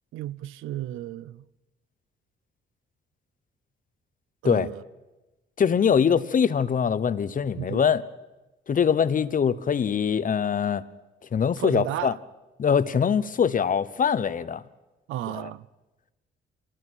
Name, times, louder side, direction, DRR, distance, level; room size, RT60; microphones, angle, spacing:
voice 1, 0.1-1.5 4.4-4.8 7.6-7.9 11.6-12.2 15.1-15.7, right 14 dB, 90° right, 0.7 m, -33 dB
voice 2, 5.6-8.0 8.7-10.8 11.3-12.1 12.6-14.6, left 7 dB, 40° left, 1.0 m, -23 dB
25.5 x 19.5 x 6.4 m
cardioid pair, 90°, 20 cm